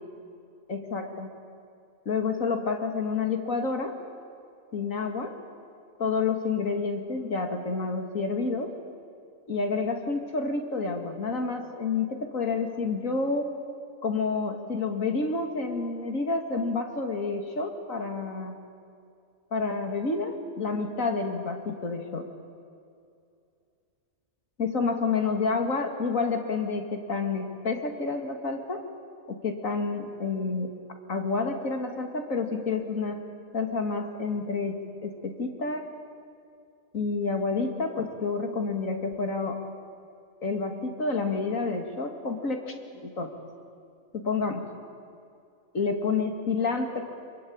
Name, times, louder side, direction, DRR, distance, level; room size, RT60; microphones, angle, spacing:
voice 1, 0.7-1.3 2.1-3.9 4.7-5.3 6.0-8.7 9.5-13.5 14.0-18.5 19.5-22.3 24.6-28.9 29.3-30.7 31.1-33.2 33.5-35.9 36.9-39.6 40.4-43.3 44.1-44.6 45.7-47.0, left 4 dB, 90° left, 4 dB, 2.8 m, -29 dB
26.5 x 22.0 x 8.8 m, 2.5 s
omnidirectional pair, 1.4 m